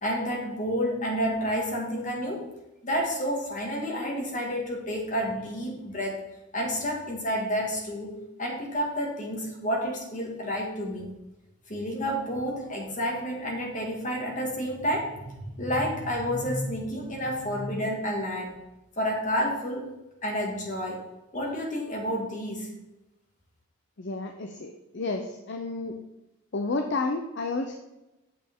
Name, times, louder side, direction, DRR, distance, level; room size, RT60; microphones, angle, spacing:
voice 1, 0.0-2.5 2.8-6.2 6.5-11.1 11.7-18.6 19.0-19.9 20.2-21.1 21.3-22.7, equal, 35° left, 0 dB, 1.9 m, -30 dB
voice 2, 24.0-26.0 26.5-27.8, left 3 dB, 50° left, 5 dB, 0.6 m, -31 dB
8.5 x 6.8 x 3.6 m, 0.98 s
head